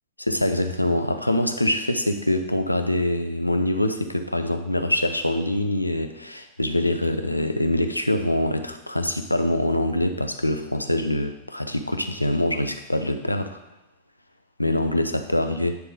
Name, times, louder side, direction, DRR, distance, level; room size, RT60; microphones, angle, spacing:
voice 1, 0.2-13.6 14.6-15.7, left 1 dB, 85° left, 7 dB, 0.5 m, -24 dB
9.5 x 3.8 x 3.8 m, 0.89 s
figure-of-eight pair, 90°, 0 cm